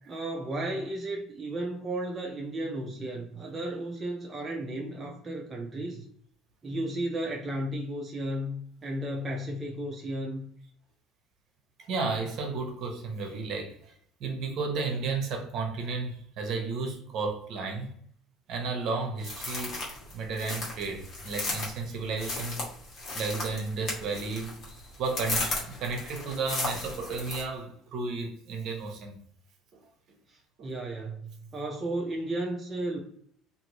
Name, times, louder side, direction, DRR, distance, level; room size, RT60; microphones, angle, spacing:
voice 1, 0.1-6.0 6.6-10.5 30.3-33.0, right 1 dB, 25° right, -1 dB, 0.5 m, -34 dB
voice 2, 11.8-13.9 14.2-17.9 18.5-19.8 20.1-22.6 23.1-24.6 25.0-29.2 30.6-30.7, right 4 dB, 55° right, 2 dB, 0.9 m, -33 dB
sound 1, 19.2-27.4, left 2 dB, 40° left, 1.2 m, -35 dB
2.6 x 2.5 x 3.0 m, 0.64 s
cardioid pair, 120°, 0 cm